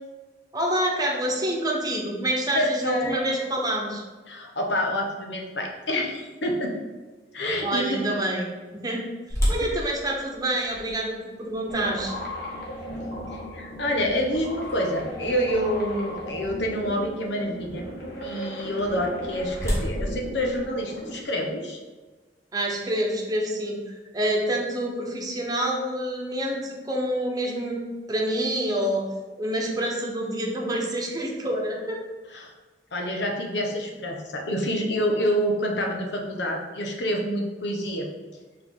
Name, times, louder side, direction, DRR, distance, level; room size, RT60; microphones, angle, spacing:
voice 1, 0.5-4.0 7.6-8.5 8.7-9.0 9.5-12.1 22.5-27.8 28.1-29.1 29.4-32.0, right 1 dB, 20° right, -1 dB, 1.1 m, -27 dB
voice 2, 2.5-3.2 4.3-6.7 7.3-8.0 9.6-9.7 13.3-17.8 18.2-21.8 32.3-32.5 32.9-38.1, equal, 80° left, 1 dB, 1.1 m, -27 dB
sound 1, 9.3-15.2 15.8-15.9 16.5-16.7 18.8-21.5, equal, 15° left, 1.9 m, -32 dB
sound 2, 11.7-21.2, equal, 60° left, 1.7 m, -36 dB
5.9 x 3.4 x 5.6 m, 1.3 s
head